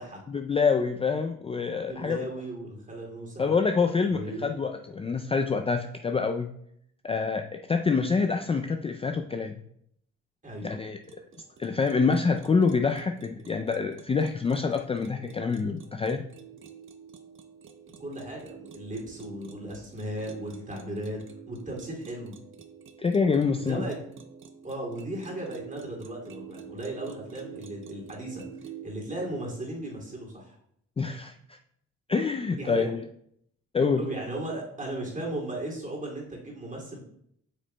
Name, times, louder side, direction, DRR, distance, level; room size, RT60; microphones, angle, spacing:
voice 1, 0.3-2.2 3.4-6.5 7.0-9.6 10.6-11.0 11.6-16.2 23.0-23.9 31.0-31.6 32.1-33.0 33.7-34.1, left 5 dB, 20° left, 6 dB, 0.4 m, -26 dB
voice 2, 1.8-3.5 4.1-4.5 10.4-10.7 18.0-21.2 21.5-22.3 23.5-24.0 24.6-28.4 28.8-30.6 32.6-32.9 34.0-37.0, right 1 dB, 25° right, -1 dB, 2.5 m, -36 dB
sound 1, 11.0-28.9, right 7 dB, 45° right, 0.7 m, -48 dB
8.0 x 6.1 x 2.2 m, 0.71 s
cardioid pair, 90°, 30 cm